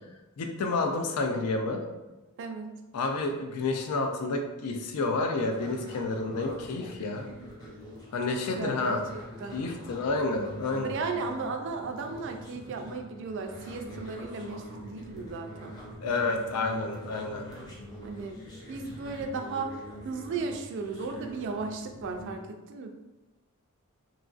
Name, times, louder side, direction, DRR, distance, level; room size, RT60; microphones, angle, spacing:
voice 1, 0.4-1.8 2.9-7.3 8.1-9.0 9.5-10.9 16.0-17.5, left 3 dB, 85° left, 4 dB, 0.4 m, -30 dB
voice 2, 2.4-2.7 8.5-9.6 10.9-15.7 18.0-18.4 18.7-19.8 20.0-22.9, right 4 dB, 55° right, 4 dB, 0.3 m, -35 dB
sound 1, 5.4-22.3, equal, 15° left, 0.6 m, -44 dB
2.9 x 2.4 x 2.4 m, 1.1 s
head